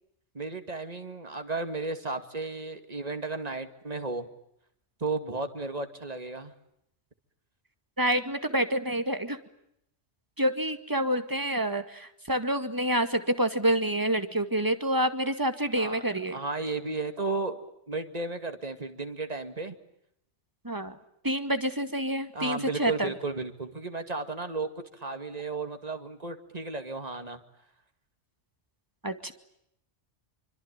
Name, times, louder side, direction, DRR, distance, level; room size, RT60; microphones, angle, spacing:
voice 1, 0.3-4.3 5.0-6.5 15.7-16.0 16.3-17.6 17.9-19.8 22.3-27.4, right 3 dB, 35° right, 8 dB, 2.4 m, -34 dB
voice 2, 8.0-9.4 10.4-16.4 20.6-21.0 21.2-23.1 29.0-29.3, right 1 dB, 15° right, 9 dB, 2.1 m, -28 dB
26.0 x 25.0 x 8.9 m, 0.78 s
omnidirectional pair, 1.2 m